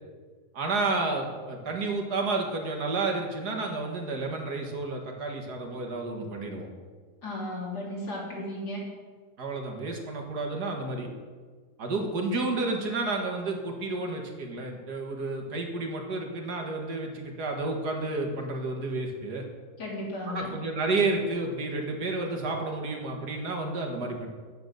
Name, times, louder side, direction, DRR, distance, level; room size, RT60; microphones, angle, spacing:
voice 1, 0.5-6.7 9.4-11.1 11.8-19.4 20.3-24.3, right 3 dB, 80° right, 2 dB, 2.2 m, -31 dB
voice 2, 7.2-8.9 19.8-20.5, left 1 dB, 80° left, -4 dB, 3.6 m, -35 dB
9.7 x 8.0 x 6.5 m, 1.5 s
omnidirectional pair, 1.7 m